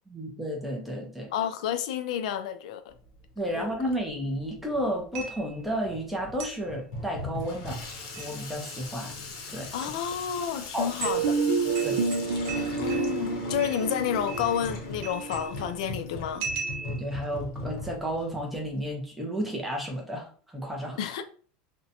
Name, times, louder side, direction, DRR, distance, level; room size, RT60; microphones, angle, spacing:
voice 1, 0.1-1.3 3.4-7.8 8.2-9.2 9.5-9.7 10.7-10.9 11.8-12.0 16.8-21.0, equal, 5° right, 0.5 m, -32 dB
voice 2, 1.3-2.8 3.5-3.7 9.7-11.4 12.8-16.5 21.0-21.2, left 9 dB, 85° left, 0.4 m, -30 dB
Water tap faucet / Sink (filling or washing), 2.9-18.9, left 3 dB, 55° left, 0.7 m, -40 dB
sound 1, 5.2-5.6 6.4-6.7 7.9-8.4 9.6-9.9 10.5-10.6 11.0-11.3 11.8-13.3 13.6-13.9 14.3-14.7 15.0-15.7 16.4-17.1, right 4 dB, 60° right, 0.8 m, -38 dB
sound 2, 11.0-16.8, right 4 dB, 80° right, 0.4 m, -30 dB
2.6 x 2.1 x 2.6 m
supercardioid pair, 180°, 4 cm